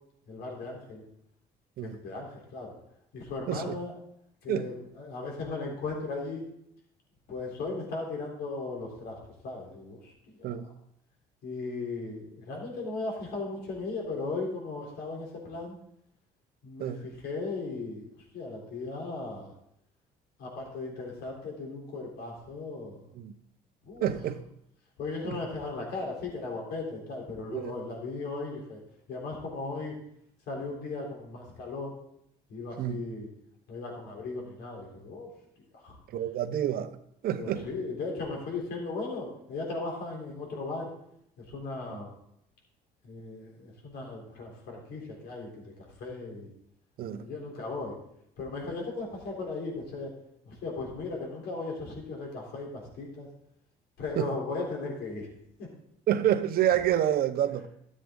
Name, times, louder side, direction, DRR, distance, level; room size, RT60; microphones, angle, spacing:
voice 1, 0.3-1.0 1.8-2.7 3.1-4.0 4.4-6.4 7.3-10.6 11.4-15.8 16.6-18.1 18.3-19.5 20.4-23.0 23.9-24.1 25.0-28.8 29.1-29.9 30.5-31.9 32.5-33.3 33.7-35.3 35.7-36.0 37.4-40.9 41.4-42.1 43.0-45.7 46.0-46.5 47.1-48.0 48.4-50.1 50.4-53.3 54.0-55.3 55.6-55.7, left 3 dB, 75° left, 3.7 m, -37 dB
voice 2, 24.0-24.4 25.2-25.4 27.5-27.8 32.8-33.0 36.1-37.0 37.2-37.7 41.9-42.0 47.0-47.2 54.2-54.3 56.1-57.7, right 11 dB, 65° right, 0.8 m, -28 dB
13.0 x 7.5 x 3.8 m
cardioid pair, 110°, 17 cm